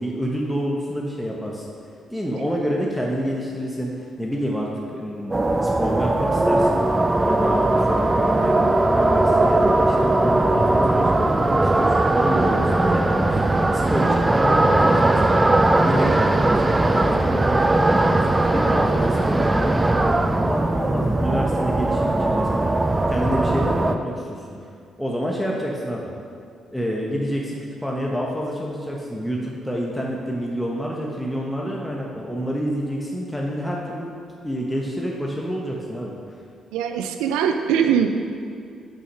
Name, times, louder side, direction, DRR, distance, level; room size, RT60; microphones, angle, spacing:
voice 1, 0.0-1.6 2.1-3.9 4.2-5.4 5.6-6.8 7.2-15.5 15.8-22.7 23.1-24.4 25.0-26.1 26.7-34.1 34.4-36.1, equal, 5° left, -3 dB, 1.1 m, -28 dB
sound 1, 5.3-24.0, right 2 dB, 20° right, 0.4 m, -19 dB
voice 2, 36.7-38.1, right 8 dB, 85° right, 6 dB, 0.3 m, -21 dB
6.3 x 5.5 x 5.6 m, 2.4 s
supercardioid pair, 55°, 0 cm